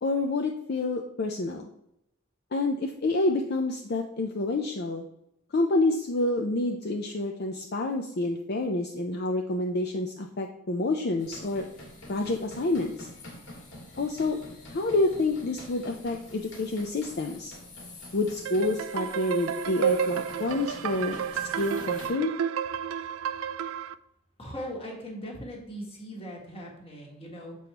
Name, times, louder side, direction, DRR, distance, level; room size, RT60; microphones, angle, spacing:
voice 1, 0.0-1.7 2.5-5.0 5.5-11.6 12.1-13.1 14.0-14.4 14.7-17.5 18.1-22.3, left 2 dB, 50° left, 3 dB, 0.5 m, -28 dB
sound 1, 11.2-22.1, left 1 dB, 65° left, 1.8 m, -46 dB
sound 2, 18.5-23.9, right 8 dB, 90° right, 0.3 m, -31 dB
voice 2, 24.4-27.6, equal, 30° left, -2 dB, 1.5 m, -39 dB
6.9 x 4.7 x 2.9 m, 0.80 s
head